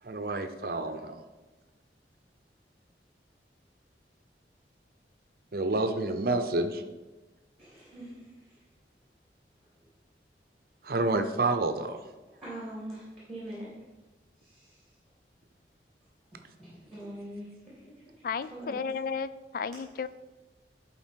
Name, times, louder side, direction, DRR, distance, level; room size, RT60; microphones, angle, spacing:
voice 1, 0.0-1.1 5.5-6.8 10.8-12.0, right 2 dB, 55° right, 8 dB, 0.7 m, -28 dB
voice 2, 7.6-8.6 12.4-13.7 14.4-14.9 16.6-17.9 18.2-18.7, right 1 dB, ahead, -8 dB, 3.0 m, -43 dB
voice 3, 18.2-20.1, left 5 dB, 50° left, 14 dB, 0.3 m, -33 dB
11.0 x 4.2 x 4.5 m, 1.2 s
head